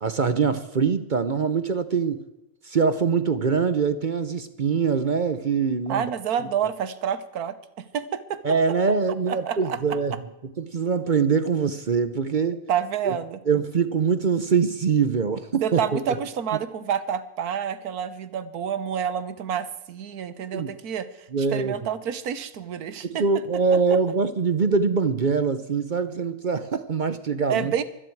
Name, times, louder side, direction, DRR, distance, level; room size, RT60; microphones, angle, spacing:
voice 1, 0.0-2.2 2.7-6.1 8.4-10.1 10.6-12.6 13.0-13.2 13.5-16.1 20.5-20.7 21.3-21.7 23.0-27.7, right 5 dB, 45° right, 12 dB, 0.7 m, -23 dB
voice 2, 5.9-8.4 9.3-9.8 12.7-13.4 15.6-23.2 23.9-24.0 27.5-27.8, right 8 dB, 80° right, 13 dB, 1.5 m, -28 dB
25.0 x 9.9 x 4.7 m, 0.94 s
omnidirectional pair, 1.6 m